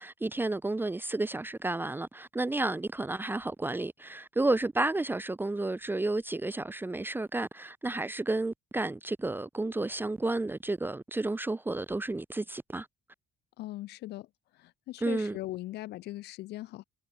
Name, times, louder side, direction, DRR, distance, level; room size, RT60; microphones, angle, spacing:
voice 1, 0.0-12.9 15.0-15.4, right 2 dB, 10° right, 1.3 m, -31 dB
voice 2, 13.6-14.3 14.5-16.8, left 16 dB, 80° left, 3.2 m, -40 dB
cardioid pair, 110°, 17 cm